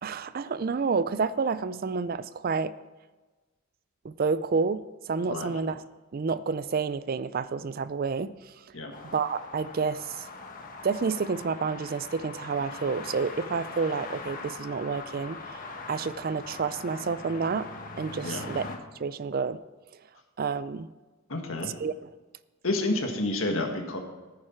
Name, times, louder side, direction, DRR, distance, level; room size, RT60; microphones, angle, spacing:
voice 1, 0.0-2.7 4.0-5.8 6.1-8.3 9.1-10.3 10.8-17.7 18.0-18.7 19.0-19.6 20.4-20.9 21.8-21.9, right 5 dB, 45° right, 15 dB, 0.4 m, -29 dB
voice 2, 5.3-5.6 8.7-8.9 18.2-18.5 21.3-21.7 22.6-24.0, left 2 dB, 70° left, 3 dB, 1.8 m, -29 dB
sound 1, 8.9-18.8, left 3 dB, 40° left, 1.3 m, -41 dB
14.5 x 9.6 x 4.5 m, 1.2 s
head